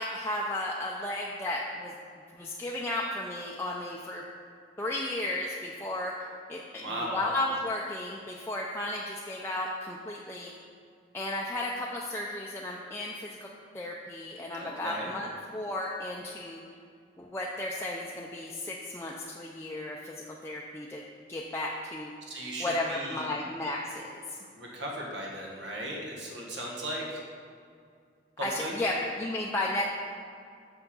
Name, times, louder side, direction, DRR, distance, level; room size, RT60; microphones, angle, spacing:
voice 1, 0.0-1.9 2.3-4.2 4.8-6.1 6.5-10.5 11.1-13.5 13.7-16.6 17.2-21.0 21.3-22.1 22.6-24.4 28.4-29.9, left 1 dB, 15° left, -2 dB, 0.4 m, -34 dB
voice 2, 6.8-7.2 14.6-15.1 22.3-23.3 24.5-27.2 28.4-28.8, right 1 dB, 80° right, -2 dB, 1.6 m, -37 dB
6.7 x 5.9 x 5.4 m, 2.3 s
head